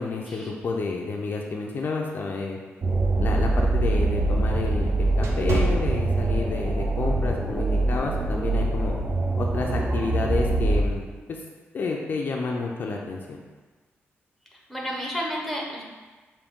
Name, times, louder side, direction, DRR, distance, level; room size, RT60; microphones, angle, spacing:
voice 1, 0.0-2.6 3.2-9.0 9.4-11.4 11.7-13.4, left 4 dB, 45° left, 0 dB, 0.4 m, -30 dB
sound 1, 2.8-10.8, right 2 dB, 35° right, 0.5 m, -24 dB
sound 2, 3.0-6.7 7.1-7.4 8.0-8.2, right 3 dB, 80° right, 0.6 m, -32 dB
voice 2, 14.7-15.8, equal, ahead, -2 dB, 0.8 m, -31 dB
5.1 x 2.6 x 3.6 m, 1.3 s
wide cardioid pair, 140°, 4 cm